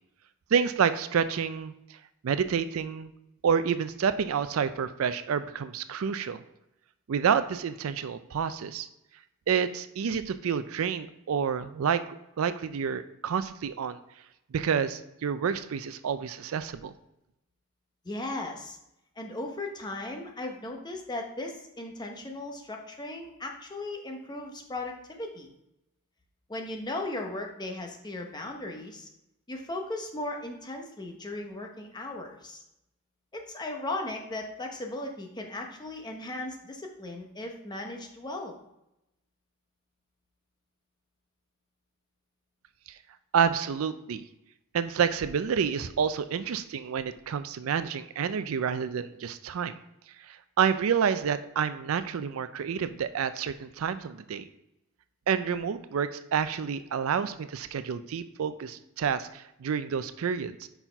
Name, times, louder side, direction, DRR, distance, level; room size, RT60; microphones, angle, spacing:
voice 1, 0.5-1.7 2.2-3.1 3.4-6.4 7.1-8.9 9.5-12.0 12.4-14.0 14.5-16.9 43.3-44.2 44.7-49.8 50.3-54.5 55.3-60.7, right 7 dB, 75° right, 12 dB, 0.4 m, -29 dB
voice 2, 18.0-18.8 19.2-25.5 26.5-29.1 29.5-32.6 33.3-38.5, left 2 dB, 20° left, 2 dB, 0.9 m, -37 dB
5.6 x 4.4 x 4.5 m, 0.86 s
head